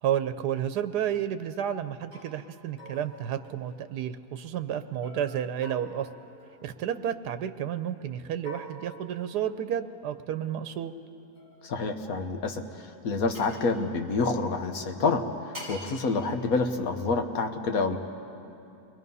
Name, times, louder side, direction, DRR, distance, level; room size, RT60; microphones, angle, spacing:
voice 1, 0.0-6.1 6.6-10.9, right 10 dB, 90° right, 10 dB, 1.3 m, -31 dB
sound 1, 1.5-1.7 2.1-2.3 2.8-4.1 5.0-7.2 8.4-9.9 11.3-12.6 13.3-13.6 15.5-15.9, right 1 dB, 30° right, 7.4 m, -47 dB
voice 2, 11.6-15.2 15.7-18.0, left 3 dB, 65° left, 6 dB, 1.6 m, -28 dB
29.0 x 22.0 x 5.5 m, 2.7 s
omnidirectional pair, 1.7 m